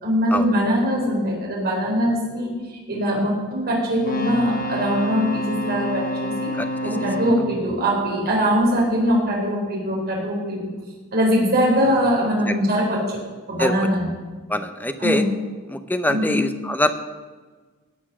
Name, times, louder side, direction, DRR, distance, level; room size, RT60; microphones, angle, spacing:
voice 1, 0.0-6.5 6.8-10.7 11.1-13.0 13.5-14.1 15.0-15.3 16.1-16.3, equal, 45° right, -3 dB, 4.3 m, -22 dB
sound 1, 3.9-9.0 11.8-11.9, left 1 dB, 40° left, 1.1 m, -29 dB
voice 2, 14.5-15.2 15.7-16.9, left 1 dB, 10° left, 8 dB, 0.7 m, -23 dB
17.5 x 6.2 x 6.2 m, 1.4 s
head